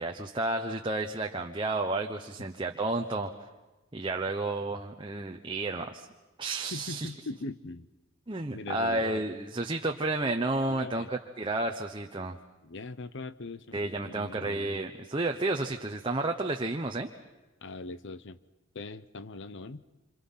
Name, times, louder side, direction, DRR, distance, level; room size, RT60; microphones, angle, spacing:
voice 1, 0.0-3.3 3.9-6.1 6.4-7.1 8.3-12.4 13.7-17.1, right 2 dB, 25° right, 3 dB, 1.0 m, -31 dB
voice 2, 6.7-7.9 8.5-9.0 10.7-11.1 12.6-14.8 17.6-18.4 18.7-19.8, left 3 dB, 55° left, 14 dB, 0.8 m, -41 dB
27.5 x 27.0 x 5.7 m, 1.1 s
head